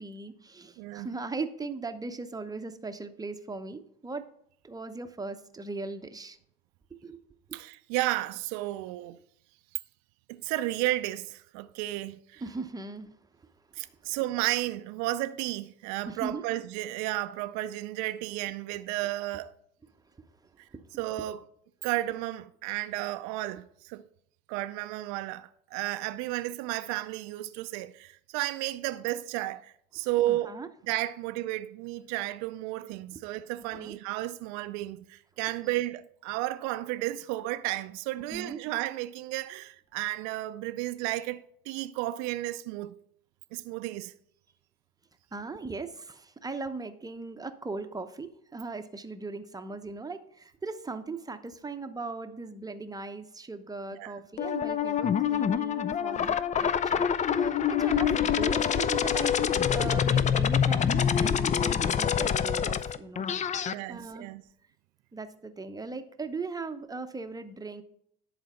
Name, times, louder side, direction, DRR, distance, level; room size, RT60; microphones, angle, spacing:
voice 1, 0.0-4.2 4.6-6.4 6.9-7.2 12.4-13.1 14.0-14.1 16.1-16.4 20.2-20.3 20.7-20.8 30.3-30.7 33.1-33.2 33.7-34.0 38.3-38.6 45.3-56.4 56.6-59.3 59.7-63.2 63.5-64.3 65.1-67.8, right 3 dB, 10° right, 0.8 m, -39 dB
voice 2, 0.8-1.1 7.5-9.2 10.3-12.4 13.8-19.5 21.0-21.4 21.8-24.0 24.5-30.6 30.9-43.0 43.5-44.1 54.0-54.1 63.7-64.4, right 16 dB, 60° right, 0.5 m, -33 dB
sound 1, 54.4-63.7, left 8 dB, 25° left, 0.4 m, -26 dB
10.5 x 4.1 x 5.5 m
hypercardioid pair, 85°, 32 cm